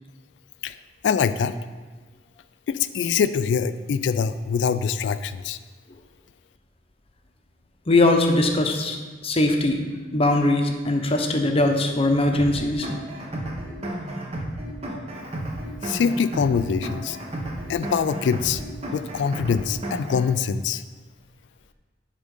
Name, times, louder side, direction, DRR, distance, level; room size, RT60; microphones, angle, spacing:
voice 1, 1.0-1.6 2.7-5.6 15.8-17.2 17.7-18.6 18.9-20.8, left 6 dB, 80° left, 13 dB, 0.3 m, -24 dB
voice 2, 7.9-9.0 9.2-9.8 10.1-12.9, left 2 dB, 35° left, 4 dB, 0.8 m, -20 dB
sound 1, 12.3-20.3, right 1 dB, 35° right, 1.0 m, -32 dB
9.8 x 3.7 x 5.3 m, 1.3 s
head